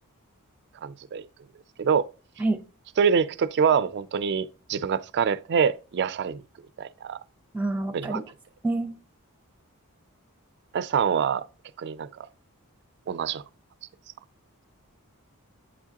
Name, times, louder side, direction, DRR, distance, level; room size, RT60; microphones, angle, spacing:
voice 1, 0.8-1.2 1.8-2.1 3.0-6.4 6.8-7.2 7.9-8.2 10.7-11.4 11.8-12.3 13.1-13.4, right 6 dB, 50° right, 0.4 m, -25 dB
voice 2, 7.5-8.2 8.6-8.9, right 2 dB, 5° right, 0.7 m, -27 dB
8.6 x 4.7 x 2.9 m
head